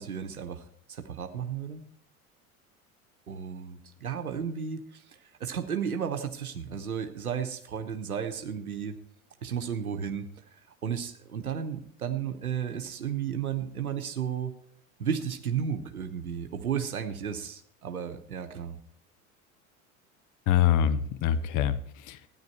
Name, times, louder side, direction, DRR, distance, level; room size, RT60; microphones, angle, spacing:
voice 1, 0.0-1.8 3.3-9.0 9.4-14.5 15.0-18.8, right 8 dB, 85° right, 6 dB, 0.9 m, -33 dB
voice 2, 20.5-22.3, left 10 dB, 45° left, 14 dB, 1.0 m, -25 dB
13.0 x 9.7 x 4.5 m, 0.67 s
figure-of-eight pair, 75°, 42 cm